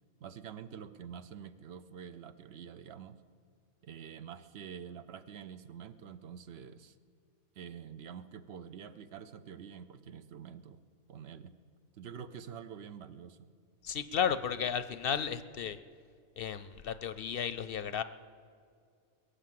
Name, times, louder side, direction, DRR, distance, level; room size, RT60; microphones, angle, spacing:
voice 1, 0.2-3.2 3.8-6.9 7.6-10.8 11.1-11.5 12.0-13.5, right 7 dB, 65° right, 11 dB, 0.9 m, -47 dB
voice 2, 13.8-15.8 16.4-18.0, left 7 dB, 60° left, 13 dB, 0.7 m, -33 dB
21.5 x 8.5 x 7.6 m, 2.2 s
omnidirectional pair, 1.2 m